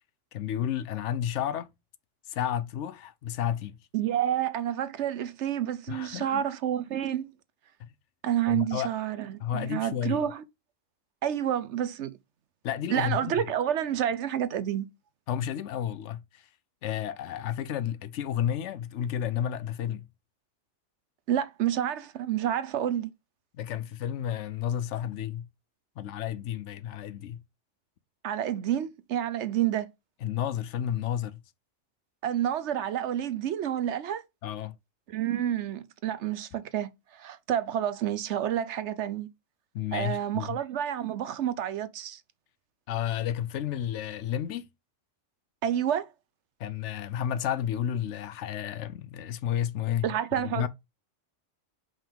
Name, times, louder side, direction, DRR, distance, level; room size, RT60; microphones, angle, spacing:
voice 1, 0.3-1.7 2.3-3.8 5.9-6.4 7.8-7.9 8.5-8.9 9.4-10.2 12.6-13.4 15.3-16.5 16.8-20.1 23.5-25.5 26.0-27.4 30.2-31.4 34.4-34.7 39.7-40.6 42.9-44.7 46.6-50.7, left 10 dB, 70° left, 0.9 m, -31 dB
voice 2, 3.9-7.3 8.2-10.4 11.2-12.1 12.9-14.9 21.3-23.1 28.2-29.9 32.2-34.2 35.1-39.3 39.9-42.2 45.6-46.1 50.0-50.7, right 10 dB, 70° right, 0.9 m, -29 dB
5.3 x 5.2 x 3.6 m
omnidirectional pair, 1.3 m